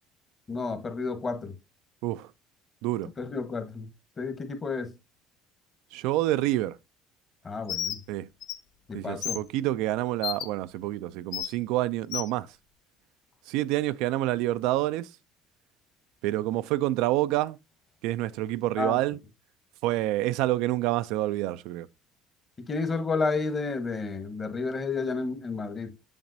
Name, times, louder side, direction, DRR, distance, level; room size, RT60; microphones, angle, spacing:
voice 1, 0.5-1.5 3.2-3.9 4.2-4.9 7.4-8.0 8.9-9.4 18.8-19.0 22.6-25.9, left 4 dB, 35° left, 1.3 m, -31 dB
voice 2, 5.9-6.8 8.1-8.3 8.9-12.5 13.5-15.1 16.2-17.6 18.0-19.2 19.8-21.9, right 16 dB, 75° right, 0.3 m, -27 dB
Bird, 7.7-8.0 8.4-8.6 9.2-9.4 10.2-10.5 11.3-11.5 12.1-12.3, left 9 dB, 70° left, 0.7 m, -31 dB
7.3 x 5.8 x 2.7 m
supercardioid pair, 85°, 0 cm